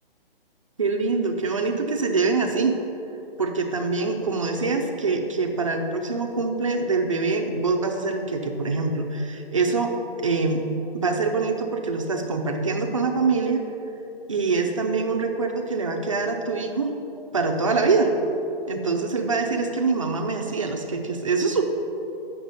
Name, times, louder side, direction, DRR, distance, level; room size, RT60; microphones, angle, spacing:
voice 1, 0.8-2.8 3.4-10.6 10.9-13.6 14.3-16.9 17.3-18.1 18.7-21.6, right 4 dB, 35° right, 3 dB, 0.5 m, -24 dB
7.9 x 5.9 x 4.1 m, 2.9 s
hypercardioid pair, 175°, 31 cm